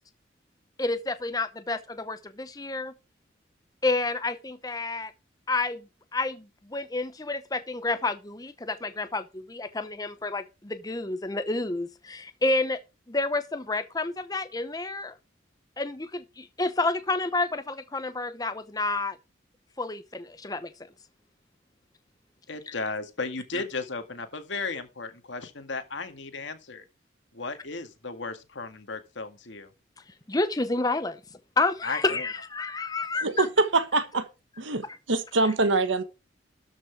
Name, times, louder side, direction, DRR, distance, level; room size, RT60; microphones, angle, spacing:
voice 1, 0.8-2.9 3.8-5.1 5.5-5.8 6.1-12.8 13.1-15.1 15.8-19.2 19.8-20.7 22.7-22.8 23.5-23.6 30.3-31.2 31.6-33.5 34.8-35.0, left 2 dB, 20° left, 0.7 m, -29 dB
voice 2, 22.5-26.8 27.3-29.7 31.8-32.3, left 3 dB, 75° left, 1.9 m, -35 dB
voice 3, 33.2-34.3 34.6-36.0, right 3 dB, 80° right, 1.3 m, -24 dB
13.0 x 6.2 x 4.6 m
head